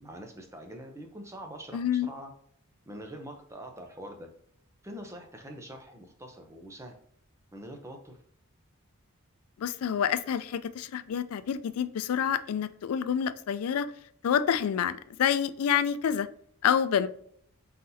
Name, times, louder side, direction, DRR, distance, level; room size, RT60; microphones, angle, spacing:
voice 1, 0.0-2.3 2.9-4.3 4.8-7.0 7.5-8.2, equal, 15° right, 3 dB, 0.6 m, -44 dB
voice 2, 1.7-2.1 9.6-13.9 14.2-16.3 16.6-17.1, left 8 dB, 80° left, 14 dB, 0.3 m, -28 dB
4.2 x 3.9 x 2.7 m, 0.64 s
head